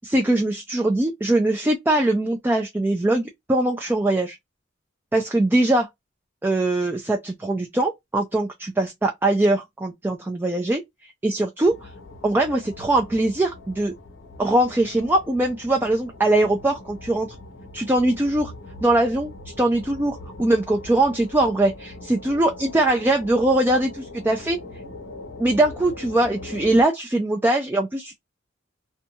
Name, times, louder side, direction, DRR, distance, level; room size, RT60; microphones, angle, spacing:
voice 1, 0.0-4.4 5.1-5.9 6.4-11.9 12.2-13.9 14.4-17.3 17.7-18.5 18.8-19.3 19.6-24.6 25.4-28.2, right 1 dB, 10° right, 0.3 m, -21 dB
sound 1, 11.6-26.8, left 2 dB, 70° left, 0.7 m, -41 dB
2.6 x 2.2 x 2.7 m
head